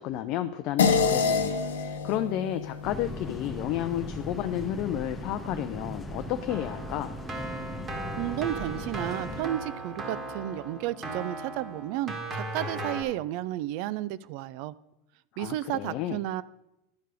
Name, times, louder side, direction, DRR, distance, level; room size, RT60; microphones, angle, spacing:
voice 1, 0.0-7.2 15.3-16.2, left 12 dB, 55° left, 8 dB, 0.4 m, -32 dB
sound 1, 0.8-5.5, left 5 dB, 80° left, 0.8 m, -29 dB
sound 2, 2.8-9.4, left 1 dB, 10° left, 1.0 m, -39 dB
Keyboard (musical), 6.5-13.0, right 2 dB, 30° right, 1.9 m, -37 dB
voice 2, 8.2-14.7 15.4-16.4, right 14 dB, 60° right, 18 dB, 0.4 m, -32 dB
11.5 x 4.6 x 5.1 m, 0.89 s
hypercardioid pair, 85°, 0 cm